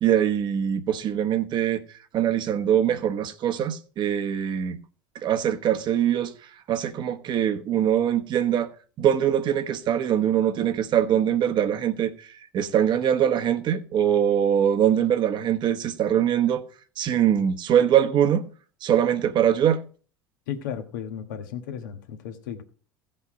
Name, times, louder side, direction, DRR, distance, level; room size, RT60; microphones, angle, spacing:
voice 1, 0.0-1.8 2.1-4.8 5.2-6.3 6.7-8.7 9.0-12.1 12.5-16.6 17.0-18.5 18.8-19.8, right 9 dB, 50° right, 1.1 m, -22 dB
voice 2, 20.5-22.6, left 8 dB, 80° left, 1.3 m, -34 dB
16.0 x 5.5 x 4.8 m
hypercardioid pair, 75°, 10 cm